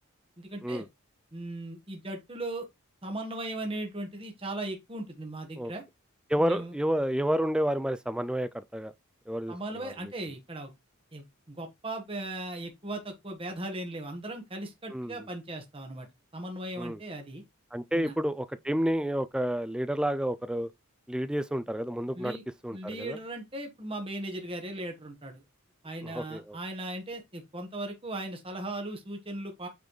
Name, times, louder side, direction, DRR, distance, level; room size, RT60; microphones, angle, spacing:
voice 1, 0.4-0.8 1.3-2.7 3.0-5.8 6.4-6.7 9.5-10.7 11.1-16.1 16.3-17.4 17.9-18.1 22.1-22.4 22.7-25.4 25.8-29.7, right 1 dB, 25° right, 1.3 m, -38 dB
voice 2, 6.3-8.9 9.3-9.9 14.9-15.2 16.8-17.0 17.7-20.7 21.1-22.4 22.6-23.2 26.0-26.6, equal, 5° right, 0.3 m, -30 dB
8.3 x 4.1 x 3.2 m
head